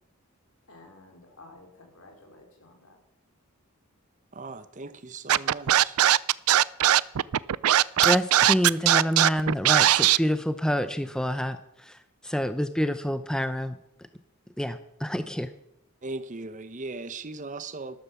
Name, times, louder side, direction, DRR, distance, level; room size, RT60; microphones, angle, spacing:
voice 1, 0.7-3.0, left 2 dB, 75° left, 2 dB, 4.2 m, -52 dB
voice 2, 4.3-6.0 16.0-18.0, right 3 dB, 35° right, 12 dB, 0.9 m, -38 dB
Scratching (performance technique), 5.3-10.2, right 12 dB, 80° right, 0.4 m, -19 dB
voice 3, 8.0-13.8 14.6-15.5, equal, 5° left, 11 dB, 0.6 m, -27 dB
13.0 x 11.5 x 7.0 m, 0.81 s
head